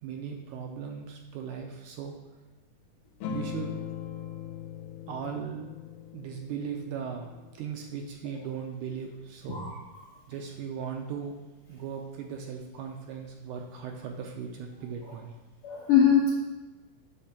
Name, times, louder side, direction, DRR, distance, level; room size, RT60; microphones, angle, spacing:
voice 1, 0.0-2.1 3.3-3.7 5.1-5.7 6.1-9.6 10.3-11.4 11.7-15.3, right 7 dB, 80° right, 2 dB, 1.9 m, -38 dB
sound 1, 3.2-8.1, left 7 dB, 90° left, 2.3 m, -40 dB
voice 2, 9.5-10.0 15.0-15.1 15.6-16.3, left 7 dB, 70° left, -6 dB, 1.3 m, -23 dB
8.1 x 3.2 x 5.8 m, 1.1 s
omnidirectional pair, 3.9 m